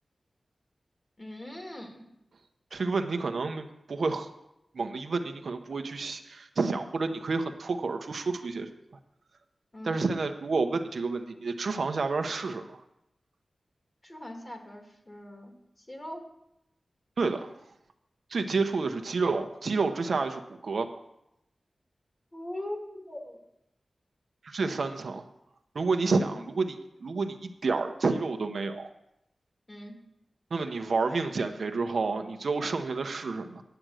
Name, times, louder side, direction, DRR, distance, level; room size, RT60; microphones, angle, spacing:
voice 1, 1.2-2.1 9.7-10.0 14.0-16.2 22.3-23.4 24.7-24.8 25.9-26.5 29.7-30.0, left 1 dB, 30° left, 2 dB, 2.1 m, -41 dB
voice 2, 2.7-4.3 4.7-8.7 9.8-12.8 17.2-17.5 18.3-20.9 24.4-25.2 25.7-26.7 27.0-28.9 30.5-33.6, right 4 dB, 70° right, 6 dB, 0.8 m, -29 dB
10.5 x 7.8 x 6.3 m, 0.83 s
wide cardioid pair, 105°, 0 cm